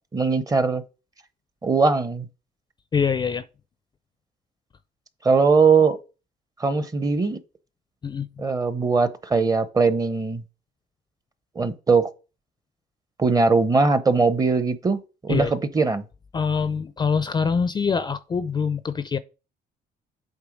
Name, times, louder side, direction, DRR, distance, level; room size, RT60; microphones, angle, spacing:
voice 1, 0.1-0.8 1.6-2.3 5.2-6.0 6.6-7.4 8.4-10.4 11.6-12.1 13.2-16.0, right 4 dB, 20° right, 0.8 m, -20 dB
voice 2, 2.9-3.4 8.0-8.5 15.3-15.5 16.3-19.2, left 6 dB, 25° left, 0.4 m, -24 dB
8.1 x 3.3 x 5.0 m
cardioid pair, 110°, 17 cm